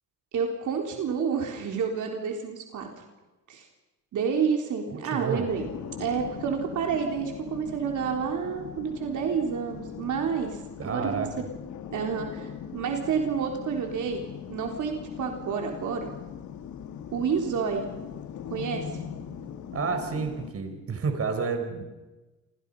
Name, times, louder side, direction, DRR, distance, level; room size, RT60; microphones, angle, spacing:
voice 1, 0.3-2.9 3.5-3.7 4.1-5.6 6.0-11.3 11.9-16.1 17.1-17.9 18.5-18.9, right 6 dB, 80° right, 2 dB, 4.0 m, -29 dB
voice 2, 4.9-5.4 10.8-11.3 19.7-21.8, right 5 dB, 50° right, 6 dB, 4.7 m, -30 dB
sound 1, 5.5-20.5, left 8 dB, 75° left, 2.0 m, -40 dB
28.5 x 26.0 x 5.6 m, 1.1 s
cardioid pair, 120°, 30 cm